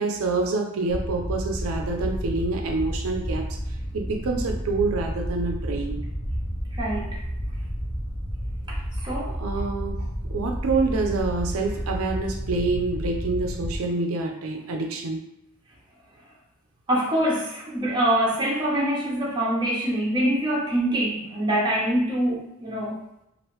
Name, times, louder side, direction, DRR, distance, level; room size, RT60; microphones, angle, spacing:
voice 1, 0.0-3.5 3.9-6.0 9.4-10.0 10.3-15.3, right 3 dB, 85° right, 3 dB, 0.4 m, -27 dB
sound 1, 0.9-13.8, equal, 40° left, 0.8 m, -31 dB
voice 2, 6.7-7.2 8.7-9.4 16.9-23.0, right 1 dB, 20° right, -4 dB, 0.7 m, -25 dB
3.0 x 2.5 x 3.1 m, 0.83 s
head